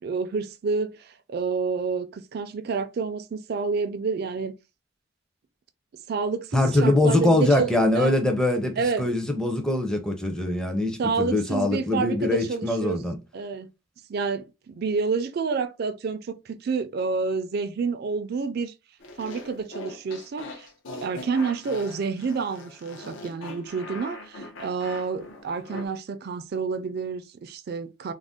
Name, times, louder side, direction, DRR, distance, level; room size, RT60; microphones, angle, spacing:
voice 1, 0.0-4.5 6.1-8.1 8.8-9.1 11.0-13.0 13.3-13.7 14.1-18.7 19.2-20.7 21.0-28.1, right 4 dB, 55° right, 0.4 m, -29 dB
voice 2, 6.5-13.2, left 1 dB, 5° left, 0.5 m, -23 dB
sound 1, 19.0-25.9, left 2 dB, 75° left, 0.6 m, -41 dB
2.5 x 2.0 x 3.5 m
head